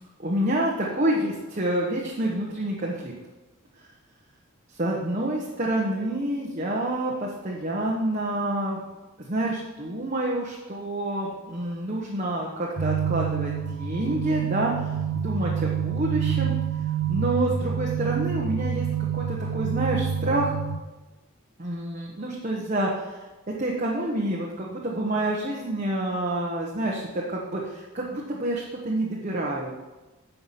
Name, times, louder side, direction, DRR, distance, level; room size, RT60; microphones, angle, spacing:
voice 1, 0.2-3.1 4.8-8.8 9.3-14.7 15.2-16.5 17.1-18.9 19.1-20.5 21.6-23.2 23.6-27.0 27.3-29.8, right 1 dB, 35° right, -3 dB, 1.0 m, -28 dB
sound 1, 12.8-20.8, right 7 dB, 85° right, 0.8 m, -27 dB
9.3 x 5.8 x 5.6 m, 1.1 s
head